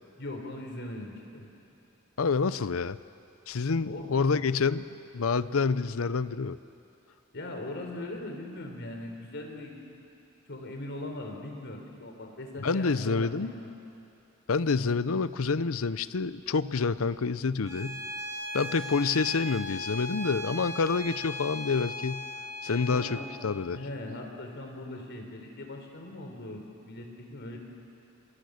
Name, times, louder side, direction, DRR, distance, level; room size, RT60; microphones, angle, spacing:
voice 1, 0.2-1.5 3.8-4.1 4.3-4.4 7.3-9.8 10.5-13.7 22.7-23.2 23.7-27.6, left 1 dB, 60° left, 2 dB, 4.0 m, -40 dB
voice 2, 2.2-3.0 3.5-6.6 12.6-13.5 14.5-18.0 18.5-22.2 22.6-23.8, left 4 dB, 85° left, 15 dB, 0.7 m, -28 dB
Bowed string instrument, 17.6-23.3, left 1 dB, 15° right, 2.4 m, -38 dB
28.0 x 25.5 x 6.5 m, 2.7 s
head